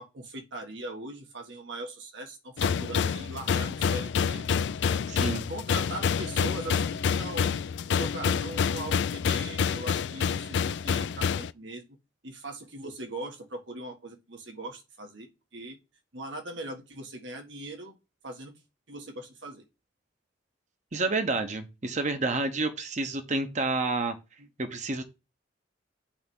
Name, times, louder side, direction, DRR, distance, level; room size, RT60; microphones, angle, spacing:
voice 1, 0.0-4.5 5.5-7.6 8.0-12.0 12.2-15.8 16.1-17.9 18.2-18.6 18.9-19.6 24.4-24.5, right 2 dB, 75° right, 3 dB, 1.6 m, -40 dB
sound 1, 2.6-11.5, left 6 dB, 65° left, 0.3 m, -28 dB
voice 2, 5.1-5.5 20.9-24.2 24.6-25.1, right 3 dB, 40° right, 7 dB, 0.9 m, -29 dB
8.5 x 3.3 x 5.4 m, 0.27 s
head